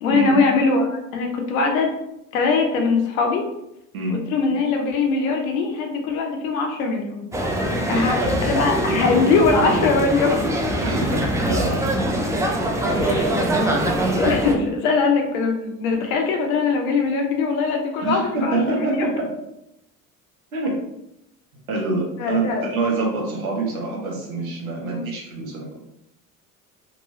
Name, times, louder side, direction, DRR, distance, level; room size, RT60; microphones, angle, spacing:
voice 1, 0.0-1.9 2.3-3.5 4.1-7.2 7.9-8.2 8.4-10.4 13.0-13.3 13.7-19.1 22.2-22.7 24.8-25.1, left 4 dB, 80° left, 2 dB, 0.7 m, -21 dB
sound 1, 7.3-14.5, right 1 dB, 10° right, 0.4 m, -23 dB
voice 2, 7.9-8.3 10.8-11.7 12.7-13.0 14.2-14.3 18.0-19.3 20.5-20.8 21.7-25.8, right 3 dB, 90° right, -2 dB, 0.9 m, -26 dB
2.8 x 2.3 x 2.7 m, 0.85 s
hypercardioid pair, 65°, 41 cm